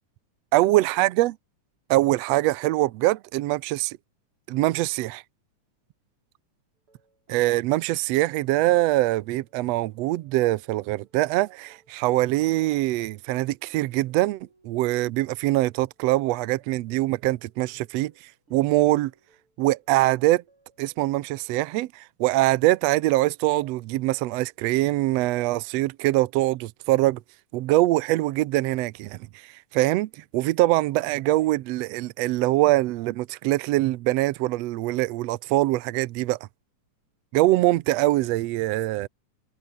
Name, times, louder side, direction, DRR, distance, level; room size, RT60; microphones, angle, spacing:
voice 1, 0.5-1.4 1.9-4.0 4.5-5.2 7.3-18.1 18.5-19.1 19.6-20.4 20.8-27.2 27.5-29.2 29.7-36.4 37.3-39.1, right 17 dB, 75° right, 1.5 m, -23 dB
sound 1, 6.8-21.6, right 3 dB, 40° right, 7.8 m, -64 dB
omnidirectional pair, 3.6 m